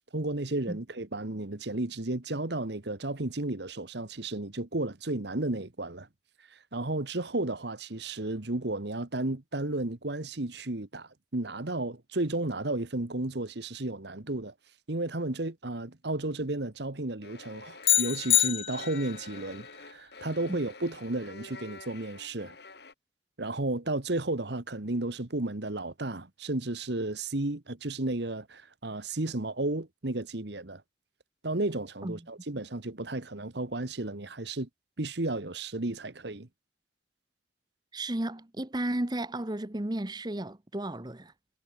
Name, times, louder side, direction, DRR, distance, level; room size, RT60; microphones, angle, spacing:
voice 1, 0.1-6.1 6.5-14.5 14.9-22.5 23.4-30.8 31.4-34.7 35.0-36.5, right 2 dB, 60° right, 1.5 m, -33 dB
sound 1, 17.2-22.9, left 3 dB, 55° left, 4.5 m, -48 dB
sound 2, 17.8-19.2, left 12 dB, 30° left, 0.4 m, -25 dB
voice 2, 37.9-41.3, right 1 dB, 20° right, 1.0 m, -33 dB
head